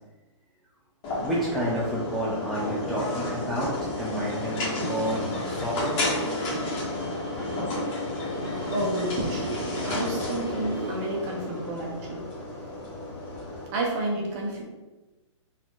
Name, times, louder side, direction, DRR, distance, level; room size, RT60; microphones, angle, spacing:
sound 1, 1.0-13.7, left 1 dB, 30° left, 1.2 m, -31 dB
voice 1, 1.2-3.7 4.0-6.0, equal, ahead, -9 dB, 0.4 m, -30 dB
voice 2, 8.7-12.3 13.7-14.6, right 1 dB, 30° right, 0 dB, 0.8 m, -30 dB
4.0 x 2.6 x 3.0 m, 1.1 s
hypercardioid pair, 150°, 16 cm